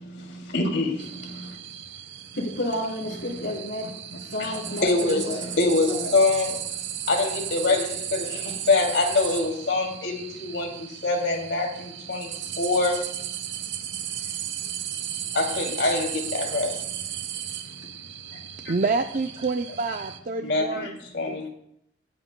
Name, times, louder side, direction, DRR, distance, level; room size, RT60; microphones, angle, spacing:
voice 1, 0.0-1.6 3.0-3.5 4.4-6.8 7.1-13.3 13.7-13.8 15.3-16.8 18.3-18.4 18.6-18.7 20.4-21.5, left 3 dB, 70° left, 2.7 m, -25 dB
sound 1, 1.0-20.2, right 10 dB, 80° right, 1.0 m, -35 dB
voice 2, 2.4-3.9 4.3-5.4 5.9-6.1, left 1 dB, 90° left, 3.6 m, -30 dB
voice 3, 18.7-21.0 21.3-21.5, right 3 dB, 50° right, 0.5 m, -27 dB
23.0 x 9.5 x 2.2 m
head